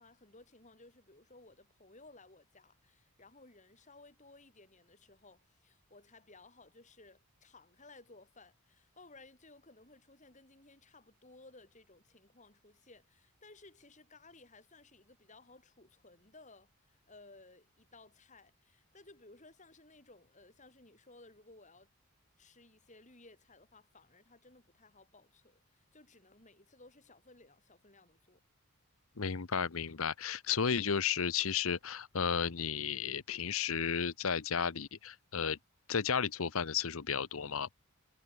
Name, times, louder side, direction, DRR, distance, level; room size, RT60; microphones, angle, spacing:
voice 1, 0.0-21.9 22.4-28.4, left 2 dB, 35° left, 4.9 m, -59 dB
voice 2, 29.2-35.6 35.9-37.7, left 6 dB, 65° left, 0.9 m, -33 dB
head